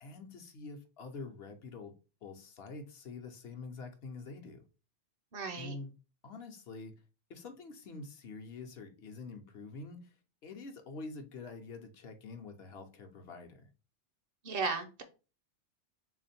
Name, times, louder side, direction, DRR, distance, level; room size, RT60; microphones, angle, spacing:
voice 1, 0.0-1.9 2.2-4.6 5.6-5.9 6.2-6.9 7.3-10.1 10.4-13.6, left 3 dB, 65° left, 0.8 m, -46 dB
voice 2, 5.3-5.7 14.4-15.0, right 4 dB, 60° right, 0.7 m, -35 dB
3.3 x 2.5 x 4.1 m
omnidirectional pair, 1.2 m